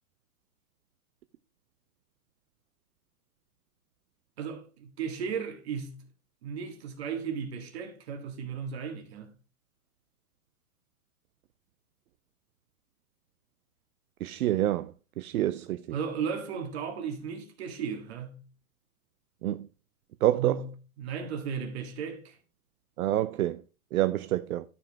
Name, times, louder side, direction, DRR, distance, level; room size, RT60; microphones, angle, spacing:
voice 1, 4.4-6.0 6.4-9.3 15.9-18.4 20.3-20.7 21.0-22.4, right 7 dB, 45° right, 1.8 m, -35 dB
voice 2, 14.2-14.9 15.2-15.8 19.4-19.6 20.2-20.6 23.0-23.6 23.9-24.6, right 13 dB, 75° right, 0.6 m, -27 dB
12.0 x 5.2 x 3.4 m
hypercardioid pair, 175°, 44 cm